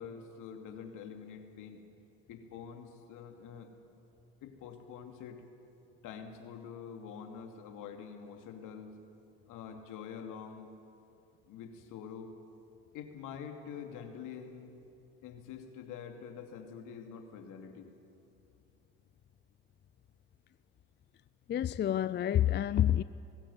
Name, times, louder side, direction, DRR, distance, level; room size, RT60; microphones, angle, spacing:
voice 1, 0.0-1.8 2.3-3.7 4.4-5.4 6.0-8.9 9.5-10.7 11.4-12.3 12.9-14.7 15.2-17.9, left 7 dB, 65° left, 2.7 m, -46 dB
voice 2, 21.5-23.0, left 11 dB, 30° left, 0.5 m, -28 dB
19.0 x 15.5 x 9.8 m
hypercardioid pair, 70°, 34 cm